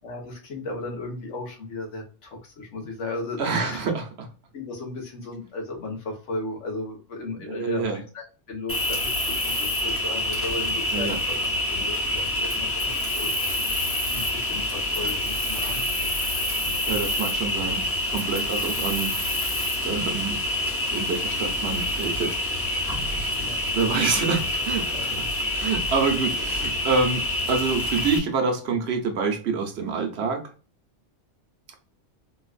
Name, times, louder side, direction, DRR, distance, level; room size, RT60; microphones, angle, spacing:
voice 1, 0.0-3.8 4.5-11.4 11.7-13.4 14.1-16.5 23.4-23.6 24.9-25.1, left 2 dB, 80° left, 1.4 m, -35 dB
voice 2, 3.4-4.3 7.5-8.0 10.9-11.2 16.8-19.2 19.8-20.4 20.9-22.4 23.7-25.1 25.5-30.5, right 4 dB, 65° right, 1.0 m, -27 dB
Cricket, 8.7-28.2, left 1 dB, 15° left, 0.7 m, -27 dB
3.9 x 2.4 x 2.4 m
omnidirectional pair, 1.2 m